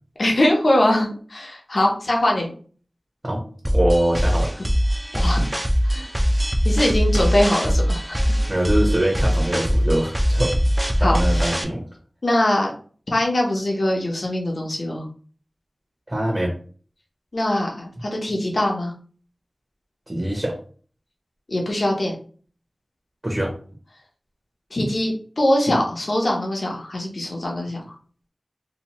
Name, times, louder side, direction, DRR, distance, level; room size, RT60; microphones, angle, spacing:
voice 1, 0.2-2.5 5.1-5.5 5.8-6.1 6.6-8.2 11.0-11.4 12.2-12.7 13.1-15.1 17.3-18.9 21.5-22.2 24.7-27.8, left 1 dB, 70° left, 0 dB, 0.7 m, -22 dB
sound 1, 3.6-11.6, equal, 15° right, 0.4 m, -21 dB
voice 2, 3.7-4.5 8.5-10.6 11.0-11.8 16.1-16.5 20.1-20.6 23.2-23.5, right 1 dB, 35° right, -1 dB, 0.7 m, -23 dB
2.8 x 2.1 x 2.9 m, 0.42 s
wide cardioid pair, 50°, 0 cm